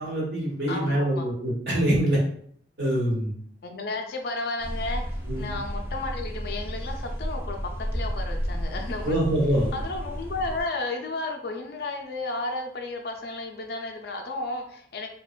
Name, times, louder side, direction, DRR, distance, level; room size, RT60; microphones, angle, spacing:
voice 1, 0.0-2.2 2.8-3.3 5.3-5.5 9.0-9.7, right 1 dB, 70° right, -5 dB, 1.0 m, -24 dB
voice 2, 0.7-1.3 3.6-9.2 9.7-15.1, left 2 dB, 60° left, 3 dB, 0.4 m, -33 dB
sound 1, 4.6-10.6, equal, 10° right, 0.4 m, -32 dB
2.8 x 2.1 x 2.4 m, 0.62 s
head